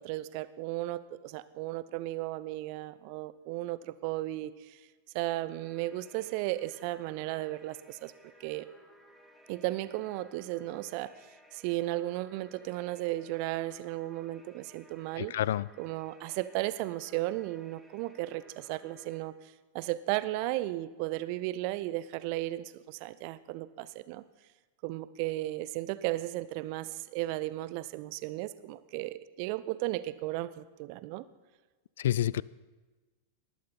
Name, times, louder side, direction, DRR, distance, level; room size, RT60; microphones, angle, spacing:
voice 1, 0.0-4.8 5.1-8.1 8.4-8.7 9.5-15.3 15.8-24.2 24.8-31.2, right 17 dB, 45° right, 16 dB, 0.6 m, -35 dB
sound 1, 5.5-19.2, equal, ahead, 1.8 m, -59 dB
voice 2, 15.2-15.7 32.0-32.4, left 12 dB, 60° left, 22 dB, 0.3 m, -28 dB
19.0 x 11.5 x 4.3 m, 1.3 s
figure-of-eight pair, 90°, 0 cm